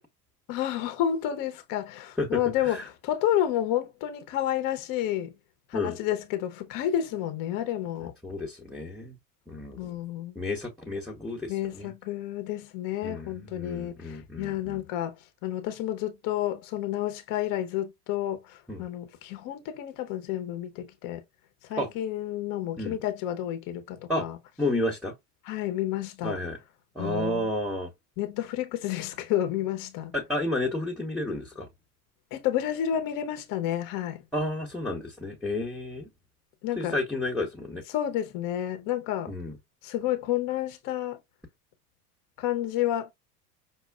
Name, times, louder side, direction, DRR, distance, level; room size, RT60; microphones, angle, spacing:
voice 1, 0.5-5.4 5.7-8.1 9.8-10.4 11.5-15.1 15.4-21.2 21.6-24.4 25.4-26.4 27.0-27.5 28.2-30.1 32.3-34.2 36.6-36.9 37.9-39.3 39.8-41.2 42.4-43.1, left 11 dB, 45° left, 0.8 m, -30 dB
voice 2, 2.2-2.8 5.7-6.0 8.2-9.2 9.5-9.9 10.3-11.9 13.0-14.8 18.7-18.8 21.8-21.9 22.8-23.0 24.1-24.3 24.6-25.1 26.2-26.6 26.9-27.9 30.1-31.7 34.3-36.1 36.8-37.8 39.3-39.6, left 1 dB, ahead, 0.8 m, -31 dB
5.4 x 2.2 x 2.2 m
hypercardioid pair, 85°, 47 cm